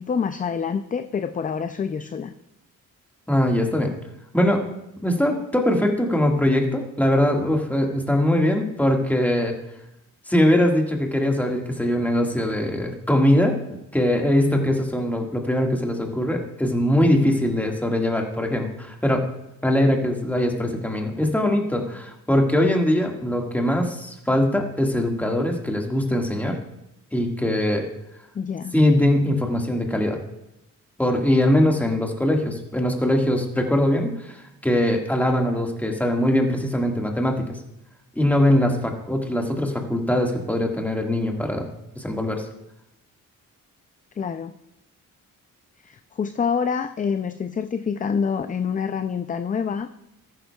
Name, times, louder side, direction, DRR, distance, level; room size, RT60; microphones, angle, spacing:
voice 1, 0.0-2.3 28.3-28.8 44.2-44.5 45.8-49.9, left 6 dB, 25° left, 10 dB, 0.4 m, -26 dB
voice 2, 3.3-3.9 4.3-4.6 5.0-9.5 10.3-13.5 13.9-19.2 19.6-26.6 27.1-27.8 28.7-30.2 31.0-37.4 38.2-41.7 42.0-42.5, left 1 dB, 5° left, 1 dB, 1.7 m, -21 dB
13.5 x 11.5 x 2.3 m, 0.88 s
cardioid pair, 90°, 33 cm